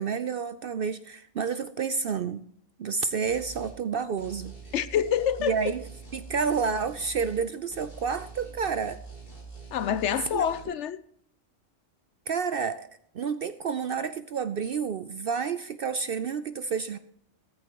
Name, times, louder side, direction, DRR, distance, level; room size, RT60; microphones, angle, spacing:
voice 1, 0.0-2.4 2.8-4.5 5.4-5.9 6.1-9.0 10.3-10.7 12.3-12.9 13.1-17.0, right 6 dB, 60° right, 0.6 m, -30 dB
sound 1, 3.2-3.8 4.2-7.5 7.7-10.6, right 4 dB, 40° left, 5.4 m, -45 dB
voice 2, 4.7-5.7 9.7-11.0, left 9 dB, 65° left, 0.8 m, -27 dB
14.5 x 13.5 x 3.0 m
omnidirectional pair, 1.4 m